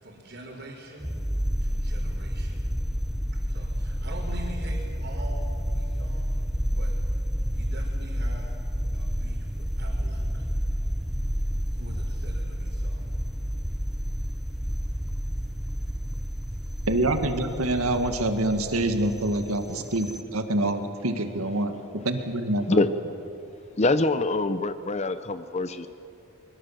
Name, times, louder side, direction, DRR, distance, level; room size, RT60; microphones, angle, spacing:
voice 1, 0.0-1.2 1.6-2.7 3.3-6.3 6.7-7.0 7.5-8.5 8.9-10.5 11.7-13.1 16.6-16.7, right 1 dB, 55° right, -6 dB, 4.1 m, -44 dB
sound 1, 1.0-20.2, equal, ahead, 0.8 m, -30 dB
voice 2, 16.9-22.8, right 1 dB, 85° right, 7 dB, 2.1 m, -26 dB
voice 3, 23.8-25.9, left 2 dB, 30° left, 12 dB, 0.6 m, -24 dB
24.5 x 22.0 x 7.6 m, 2.9 s
head